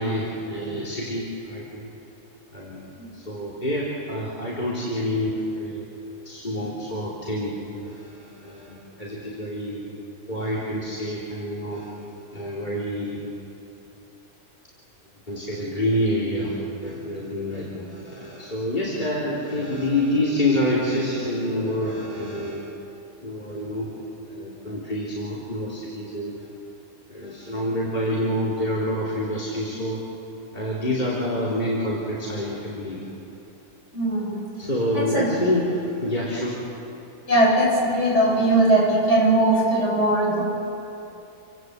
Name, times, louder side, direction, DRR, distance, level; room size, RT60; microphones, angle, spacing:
voice 1, 0.0-1.9 2.5-5.9 6.3-7.5 7.8-9.8 10.3-11.9 12.3-13.2 15.3-22.7 23.2-23.9 24.3-26.4 27.1-30.0 30.5-33.0 34.6-36.6, left 1 dB, 30° left, -5 dB, 3.5 m, -27 dB
voice 2, 33.9-34.3 34.9-35.3 37.3-40.4, right 1 dB, 50° left, -5 dB, 8.1 m, -20 dB
29.0 x 17.0 x 8.0 m, 2.8 s
omnidirectional pair, 1.6 m